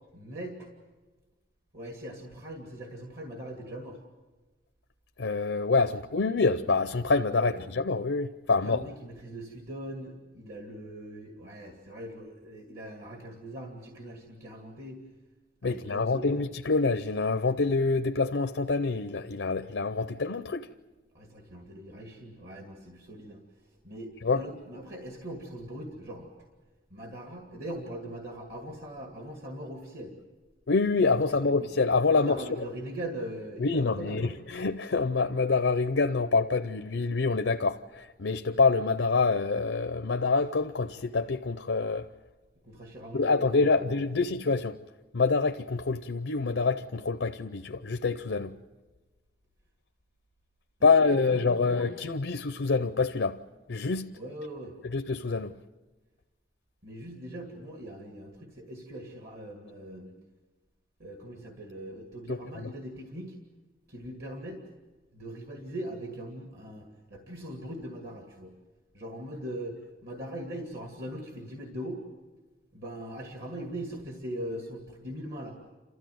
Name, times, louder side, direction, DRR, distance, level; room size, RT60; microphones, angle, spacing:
voice 1, 0.1-0.7 1.7-4.0 5.9-6.0 7.3-7.6 8.6-15.0 15.6-16.4 21.1-23.4 23.8-26.3 26.9-30.1 31.6-31.7 32.1-34.3 42.6-43.9 50.8-51.9 54.1-54.7 56.8-60.2 61.0-63.4 63.9-64.6 65.1-68.5 68.9-72.0 72.7-75.6, right 1 dB, 55° right, 2.2 m, -41 dB
voice 2, 5.2-8.9 15.6-20.7 24.2-24.4 30.7-32.6 33.6-42.1 43.1-44.8 45.1-48.5 50.8-53.4 53.7-54.1 54.9-55.5, left 4 dB, 80° left, 0.6 m, -26 dB
29.0 x 14.0 x 9.3 m
head